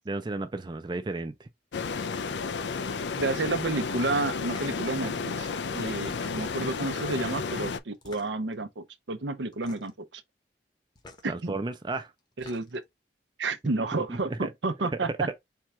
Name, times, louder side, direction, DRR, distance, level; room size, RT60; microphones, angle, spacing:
voice 1, 0.1-1.5 11.3-12.1 13.9-14.5 14.8-15.3, right 2 dB, 25° right, 0.4 m, -33 dB
sound 1, 1.7-7.8, left 5 dB, 80° left, 0.5 m, -32 dB
voice 2, 3.1-5.5 5.7-10.2 11.2-11.5 12.4-12.8 13.4-15.1, right 3 dB, 90° right, 0.7 m, -31 dB
sound 2, 4.5-4.8 6.0-6.7 7.9-8.5 9.5-10.0 11.0-11.3 12.2-12.9, left 2 dB, 25° left, 1.0 m, -49 dB
4.5 x 2.4 x 4.3 m
head